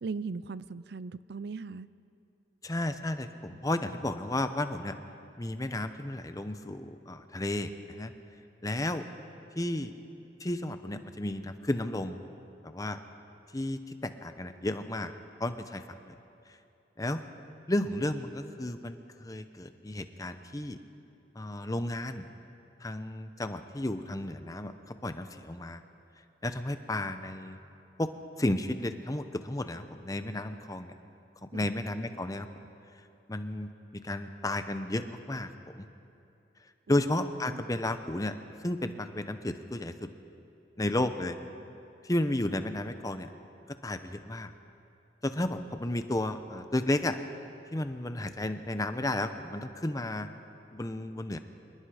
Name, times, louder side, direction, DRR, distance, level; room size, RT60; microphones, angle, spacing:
voice 1, 0.0-1.9 31.5-31.7 36.9-37.1 37.5-37.6, right 4 dB, 65° right, 17 dB, 0.5 m, -38 dB
voice 2, 2.6-4.9 5.4-8.1 8.6-9.1 9.6-9.9 10.4-12.2 12.6-13.0 13.5-15.1 15.4-16.1 17.0-17.2 17.7-20.8 21.3-22.3 22.8-25.8 26.4-27.6 28.0-28.1 28.4-30.9 31.5-32.5 33.3-35.9 36.9-40.1 40.8-41.4 42.0-43.3 43.7-44.5 45.2-47.2 47.7-50.3 50.7-51.4, left 1 dB, 20° left, 9 dB, 0.8 m, -33 dB
26.0 x 20.5 x 5.0 m, 2.8 s
head